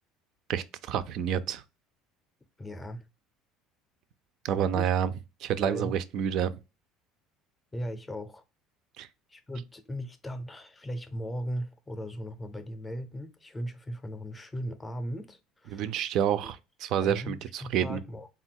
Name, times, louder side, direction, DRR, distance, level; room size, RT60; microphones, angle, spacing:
voice 1, 0.5-1.6 4.4-5.1 5.4-6.5 9.0-9.1 15.7-18.0, right 9 dB, 60° right, 0.4 m, -28 dB
voice 2, 2.6-3.1 4.7-4.9 5.6-5.9 7.7-8.4 9.3-15.9 16.2-16.5 17.0-18.3, equal, 15° left, 0.5 m, -38 dB
3.6 x 2.3 x 4.3 m
cardioid pair, 130°, 0 cm